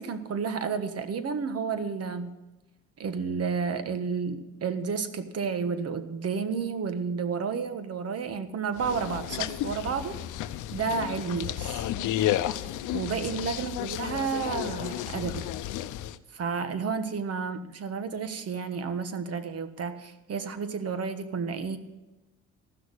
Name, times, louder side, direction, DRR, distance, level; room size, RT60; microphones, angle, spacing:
voice 1, 0.0-2.3 3.0-10.2 10.7-11.9 12.9-15.5 16.3-21.8, right 5 dB, 55° right, 10 dB, 1.3 m, -31 dB
sound 1, 8.8-16.2, left 13 dB, 85° left, 0.6 m, -32 dB
14.5 x 6.4 x 9.8 m, 1.1 s
cardioid pair, 90°, 30 cm